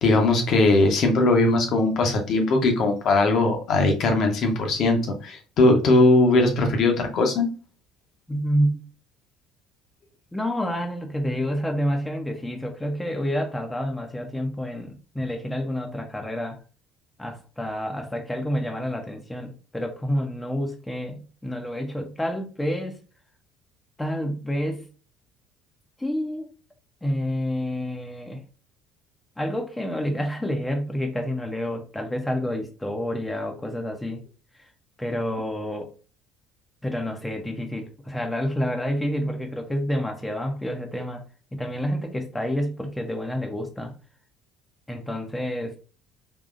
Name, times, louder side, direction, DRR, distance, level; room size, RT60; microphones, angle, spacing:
voice 1, 0.0-7.5, left 2 dB, 50° left, 3 dB, 1.0 m, -20 dB
voice 2, 8.3-8.8 10.3-16.6 17.2-23.0 24.0-24.8 26.0-26.5 27.0-28.4 29.4-34.2 34.5-34.7 35.0-35.9 36.8-41.2 41.5-43.9 44.9-45.8, equal, 10° left, 3 dB, 0.7 m, -28 dB
3.9 x 2.9 x 2.4 m, 0.36 s
figure-of-eight pair, 55°, 0 cm